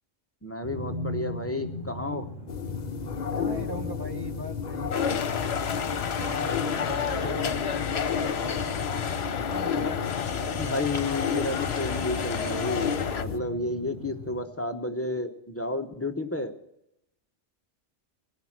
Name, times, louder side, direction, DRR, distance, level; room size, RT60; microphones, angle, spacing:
voice 1, 0.4-2.2 6.9-7.6 10.6-12.9 13.2-16.5, left 2 dB, 15° left, 5 dB, 0.8 m, -31 dB
sound 1, 0.6-14.4, left 1 dB, 55° right, 3.2 m, -40 dB
sound 2, 2.5-13.4, left 6 dB, 45° left, 0.7 m, -32 dB
voice 2, 3.3-5.4 5.8-7.2 7.7-9.2 9.5-10.0, right 1 dB, 20° right, 7 dB, 0.9 m, -41 dB
sound 3, 4.9-13.2, left 7 dB, 65° left, 1.1 m, -31 dB
17.5 x 10.5 x 5.9 m, 0.84 s
omnidirectional pair, 1.2 m